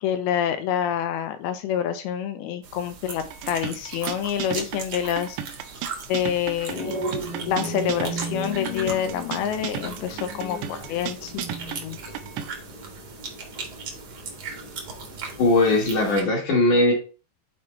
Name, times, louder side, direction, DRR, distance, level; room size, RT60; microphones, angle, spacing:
voice 1, 0.0-5.4 6.1-6.9 7.5-12.2, left 9 dB, 85° left, 2.6 m, -27 dB
sound 1, 2.6-16.2, right 5 dB, 65° right, 1.3 m, -39 dB
sound 2, 3.2-12.5, right 10 dB, 80° right, 2.5 m, -35 dB
sound 3, 6.7-15.4, equal, 35° right, 0.7 m, -36 dB
voice 2, 15.4-16.9, left 2 dB, 60° left, 2.5 m, -19 dB
7.4 x 4.4 x 3.0 m
omnidirectional pair, 4.6 m